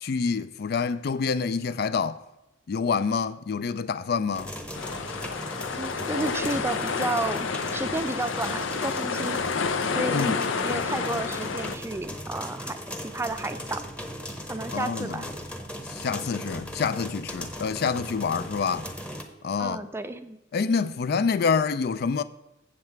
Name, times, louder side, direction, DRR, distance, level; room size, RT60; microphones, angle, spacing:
voice 1, 0.0-2.2 2.7-4.5 10.1-10.4 14.7-15.2 15.9-18.9 19.4-19.8 20.5-22.2, left 5 dB, 55° left, 0.4 m, -27 dB
sound 1, 4.3-19.2, equal, 5° left, 0.9 m, -38 dB
sound 2, 4.7-11.8, left 5 dB, 90° left, 0.6 m, -29 dB
voice 2, 5.8-7.5 7.7-9.4 9.9-13.8 14.5-15.3 19.6-20.4, right 2 dB, 15° right, 0.4 m, -32 dB
7.8 x 7.7 x 4.6 m
head